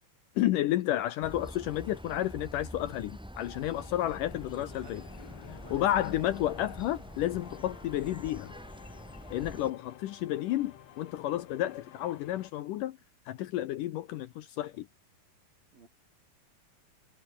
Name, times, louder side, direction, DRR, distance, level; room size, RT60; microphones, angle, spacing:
voice 1, 0.4-5.0 5.7-8.5 9.3-13.0 13.3-14.9, left 13 dB, 75° left, 2.2 m, -31 dB
sound 1, 1.2-9.7, equal, ahead, 6.1 m, -46 dB
sound 2, 3.7-12.5, left 10 dB, 60° left, 2.1 m, -52 dB
voice 2, 4.5-5.0 5.5-6.2 15.7-15.9, right 4 dB, 65° right, 8.1 m, -54 dB
omnidirectional pair, 4.4 m